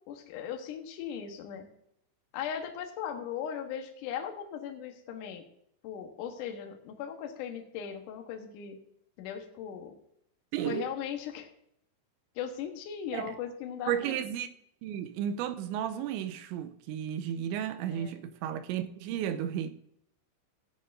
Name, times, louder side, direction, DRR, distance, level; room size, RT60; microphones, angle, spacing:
voice 1, 0.1-1.7 2.3-5.4 5.8-8.8 9.2-10.0 10.6-11.5 12.4-14.3 17.9-18.2, left 8 dB, 65° left, 2.1 m, -38 dB
voice 2, 10.5-10.8 13.1-13.3 13.9-14.5 14.8-19.7, right 10 dB, 90° right, 3.1 m, -33 dB
15.5 x 9.9 x 2.6 m
omnidirectional pair, 5.1 m